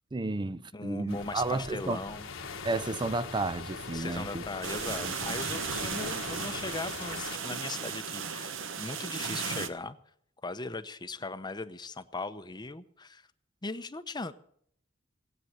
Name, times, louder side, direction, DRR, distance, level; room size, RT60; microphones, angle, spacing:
voice 1, 0.1-2.0 2.6-4.4 5.0-5.1, right 3 dB, 25° right, 0.5 m, -32 dB
voice 2, 0.7-2.3 3.9-10.0 10.4-13.3 13.6-14.3, left 3 dB, 20° left, 0.8 m, -39 dB
sound 1, 1.1-7.4, left 4 dB, 70° left, 1.5 m, -41 dB
sound 2, 4.6-9.7, right 6 dB, 70° right, 1.2 m, -36 dB
18.5 x 8.6 x 7.8 m
head